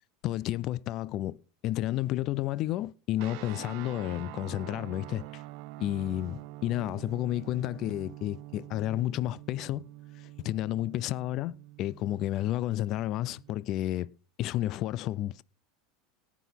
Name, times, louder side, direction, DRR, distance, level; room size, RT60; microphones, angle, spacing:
voice 1, 0.2-1.4 1.6-5.4 5.8-9.8 10.2-14.1 14.4-15.4, left 14 dB, 50° left, 0.5 m, -31 dB
sound 1, 3.2-13.5, right 17 dB, 65° right, 0.5 m, -46 dB
18.0 x 6.1 x 5.8 m
supercardioid pair, 115°, 0 cm